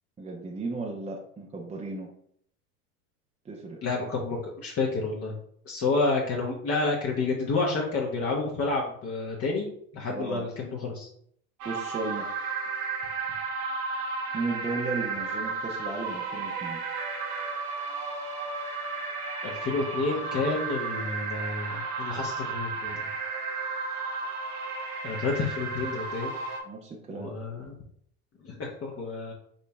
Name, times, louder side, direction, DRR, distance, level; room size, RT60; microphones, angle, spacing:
voice 1, 0.2-2.1 3.4-3.8 10.1-10.5 11.6-12.3 14.3-16.8 26.6-27.3, right 3 dB, 15° right, -1 dB, 0.6 m, -35 dB
voice 2, 3.8-5.3 5.6-11.1 19.4-23.1 25.0-26.3 27.1-27.7 28.4-29.3, left 3 dB, 30° left, -2 dB, 1.0 m, -30 dB
sound 1, 11.6-26.6, right 4 dB, 75° right, 1.1 m, -33 dB
5.4 x 3.9 x 2.2 m, 0.65 s
hypercardioid pair, 90°, 46 cm